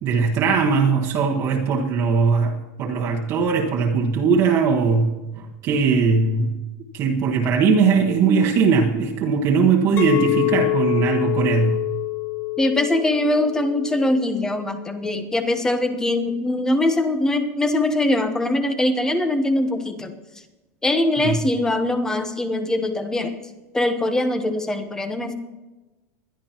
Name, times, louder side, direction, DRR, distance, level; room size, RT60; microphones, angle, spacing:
voice 1, 0.0-6.5 6.9-11.8 21.2-21.3, right 5 dB, 35° right, -1 dB, 1.3 m, -20 dB
Chink clink, 10.0-15.1, left 19 dB, 30° left, 0.6 m, -26 dB
voice 2, 12.6-20.1 20.8-23.4 23.7-25.3, left 1 dB, 5° left, 8 dB, 1.0 m, -22 dB
21.0 x 12.0 x 3.0 m, 1.1 s
supercardioid pair, 165°, 8 cm